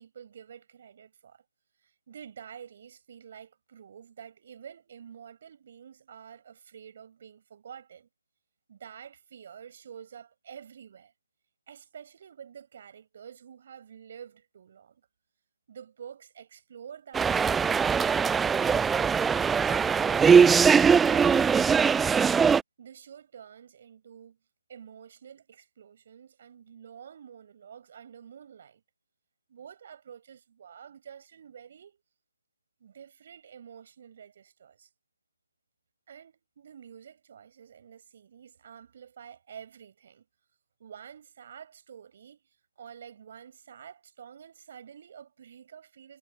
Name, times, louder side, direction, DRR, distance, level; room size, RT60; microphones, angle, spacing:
voice 1, 0.0-1.4 1.8-8.1 8.7-11.1 11.7-15.1 15.7-19.3 22.8-24.4 24.7-28.8 29.5-32.0 32.8-34.9 36.1-40.3 40.8-42.4 42.8-46.2, right 8 dB, 40° right, 6.1 m, -48 dB
sound 1, 17.1-22.6, right 6 dB, 5° right, 0.3 m, -21 dB
figure-of-eight pair, 145°, 0 cm